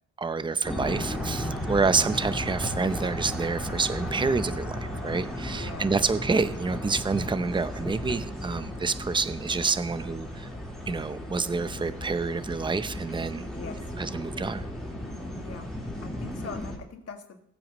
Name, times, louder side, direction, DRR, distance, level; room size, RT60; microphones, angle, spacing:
voice 1, 0.2-10.5 10.9-13.5 14.0-14.6, right 4 dB, 15° right, 12 dB, 0.7 m, -28 dB
sound 1, 0.6-16.8, equal, ahead, 4.1 m, -35 dB
voice 2, 5.5-5.9 8.5-8.8 13.5-13.9 15.4-15.7 16.0-17.4, left 5 dB, 55° left, 3 dB, 2.1 m, -44 dB
21.0 x 8.6 x 3.1 m, 0.73 s
cardioid pair, 90°, 30 cm